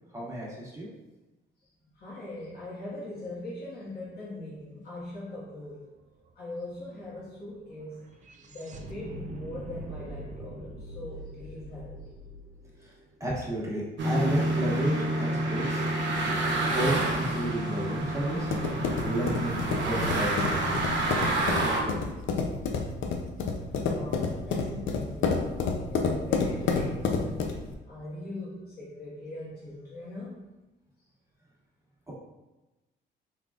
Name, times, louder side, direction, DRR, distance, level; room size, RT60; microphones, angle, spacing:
voice 1, 0.1-0.9 12.8-12.9 13.2-15.9 16.7-18.5 19.0-20.7 21.6-22.1, right 1 dB, 15° right, -6 dB, 1.3 m, -32 dB
voice 2, 1.9-5.9 6.3-8.0 8.4-12.0 23.7-25.4 25.8-30.5, left 1 dB, 50° left, -8 dB, 1.4 m, -41 dB
sound 1, 5.3-5.4 5.7-13.9, right 1 dB, 40° right, 0.5 m, -44 dB
sound 2, 14.0-21.8, right 1 dB, 70° right, 0.8 m, -28 dB
sound 3, 18.0-27.7, left 4 dB, 75° left, 0.5 m, -30 dB
3.8 x 3.5 x 2.4 m, 1.0 s
cardioid pair, 90°, 20 cm